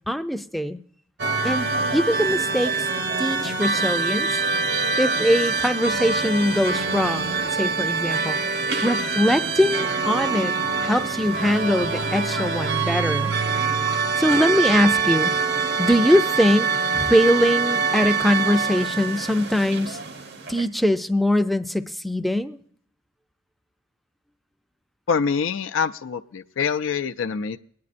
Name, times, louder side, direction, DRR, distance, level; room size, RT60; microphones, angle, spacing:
voice 1, 0.1-0.8 1.4-2.7 3.2-4.3 5.0-10.5 10.8-13.3 14.2-15.3 15.8-16.7 16.9-20.0 20.5-22.6, equal, ahead, 8 dB, 0.4 m, -22 dB
sound 1, 1.2-20.6, right 4 dB, 55° right, 0.8 m, -25 dB
voice 2, 25.1-27.6, left 6 dB, 85° left, 7 dB, 0.4 m, -25 dB
26.0 x 9.6 x 2.5 m, 0.63 s
head